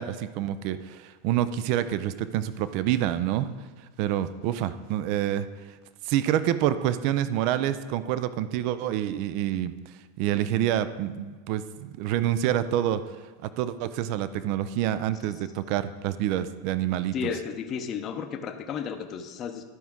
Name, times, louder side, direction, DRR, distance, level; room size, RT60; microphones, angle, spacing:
voice 1, 0.0-3.5 4.0-5.5 6.1-9.7 10.2-13.0 13.4-17.1, right 11 dB, 55° right, 13 dB, 0.4 m, -27 dB
voice 2, 17.1-19.6, left 7 dB, 35° left, 6 dB, 0.7 m, -33 dB
12.5 x 4.6 x 3.6 m, 1.4 s
supercardioid pair, 120°, 0 cm